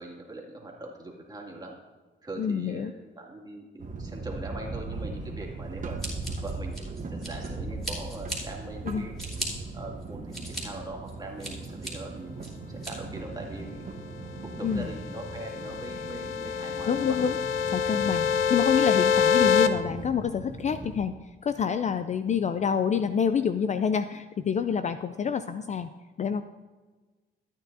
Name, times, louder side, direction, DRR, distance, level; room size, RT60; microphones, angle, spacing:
voice 1, 0.0-1.8 2.2-6.0 6.4-6.8 7.1-9.2 9.7-13.9 14.4-17.4 22.3-22.4, right 2 dB, 20° right, -1 dB, 2.2 m, -41 dB
voice 2, 2.4-2.9 8.9-9.1 14.6-14.9 16.9-17.4 17.7-21.1 21.4-25.9 26.2-26.4, left 7 dB, 35° left, 10 dB, 0.4 m, -27 dB
sound 1, 3.8-21.0, right 3 dB, 40° right, 1.2 m, -39 dB
Scissors, 6.0-7.5 7.8-8.4 8.9-9.5 10.0-10.6 11.1-11.9 12.4-12.9, right 1 dB, ahead, 2.8 m, -37 dB
sound 2, 14.7-19.7, left 7 dB, 90° left, 0.6 m, -25 dB
13.5 x 9.0 x 2.7 m, 1.3 s
cardioid pair, 90°, 20 cm